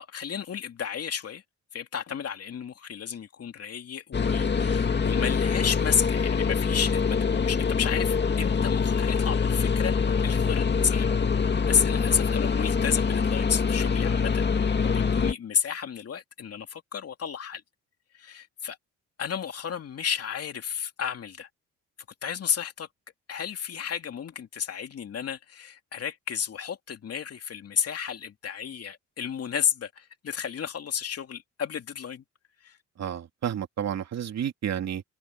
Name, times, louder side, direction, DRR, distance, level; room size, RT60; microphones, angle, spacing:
voice 1, 0.0-1.4 1.7-11.1 11.7-14.4 14.8-17.6 18.2-18.8 19.2-21.5 22.2-22.9 23.3-32.2 32.6-32.8, left 8 dB, 50° left, 2.7 m, -32 dB
sound 1, 4.1-15.3, left 5 dB, 35° left, 2.3 m, -25 dB
voice 2, 33.0-35.0, right 9 dB, 60° right, 2.7 m, -31 dB
cardioid pair, 90°, 30 cm